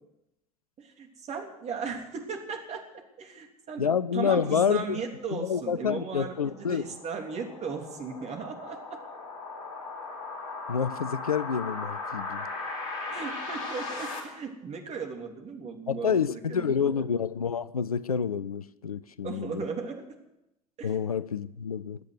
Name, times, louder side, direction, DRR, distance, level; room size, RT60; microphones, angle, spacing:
voice 1, 0.8-2.8 3.2-3.9 4.1-9.0 13.1-16.1 16.5-17.0 19.2-20.0 20.8-21.0, right 5 dB, 35° right, 3 dB, 3.3 m, -37 dB
voice 2, 3.8-5.0 5.3-6.8 10.7-12.5 15.9-19.6 20.8-22.0, left 7 dB, 85° left, 18 dB, 0.5 m, -28 dB
sound 1, 5.5-14.2, left 3 dB, 70° left, 3.5 m, -38 dB
21.0 x 8.3 x 8.0 m, 0.89 s
figure-of-eight pair, 65°, 18 cm